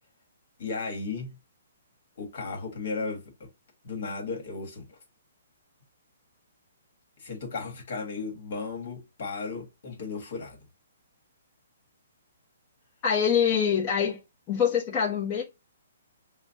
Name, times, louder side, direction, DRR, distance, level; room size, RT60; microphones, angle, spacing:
voice 1, 0.6-1.4 2.2-3.5 3.8-5.0 7.2-10.6, left 4 dB, 55° left, 1.4 m, -35 dB
voice 2, 13.0-14.2 14.5-15.4, left 7 dB, 25° left, 0.7 m, -24 dB
5.0 x 2.1 x 2.5 m
hypercardioid pair, 165°, 0 cm